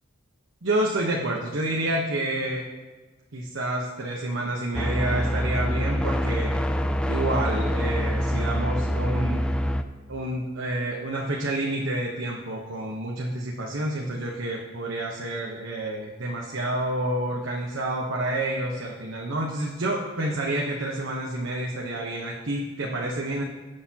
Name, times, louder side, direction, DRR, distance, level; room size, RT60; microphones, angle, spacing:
voice 1, 0.6-2.6 3.3-6.5 7.1-9.5 10.1-23.4, right 1 dB, 70° right, -1 dB, 1.0 m, -29 dB
sound 1, 4.7-9.8, equal, 5° left, 0.4 m, -25 dB
17.0 x 6.7 x 2.9 m, 1.3 s
head